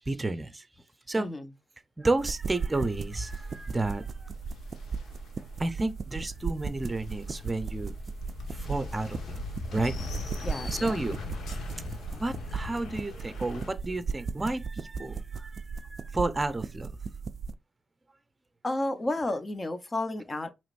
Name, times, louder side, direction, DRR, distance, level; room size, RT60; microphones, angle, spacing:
voice 1, 0.1-0.6 1.1-1.3 2.0-4.3 5.6-7.9 8.5-9.4 9.7-10.1 10.8-11.2 12.1-16.9, right 2 dB, 25° right, 0.7 m, -31 dB
voice 2, 1.1-1.5 10.4-10.9 18.6-20.5, left 2 dB, 30° left, 0.9 m, -32 dB
sound 1, 2.2-17.5, right 5 dB, 50° right, 0.4 m, -37 dB
sound 2, 2.6-13.7, left 3 dB, 80° left, 1.2 m, -41 dB
5.0 x 3.1 x 2.5 m
cardioid pair, 70°, 0 cm